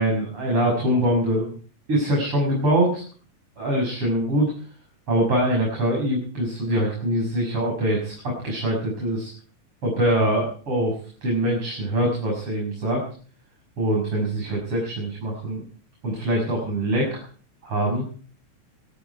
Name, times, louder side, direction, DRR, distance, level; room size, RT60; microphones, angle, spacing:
voice 1, 0.0-1.6 1.9-3.0 3.6-4.5 5.1-9.3 9.8-13.0 13.8-15.6 16.0-17.2 17.6-18.0, right 1 dB, 45° right, -1 dB, 6.9 m, -23 dB
23.5 x 13.0 x 4.7 m, 0.43 s
omnidirectional pair, 3.4 m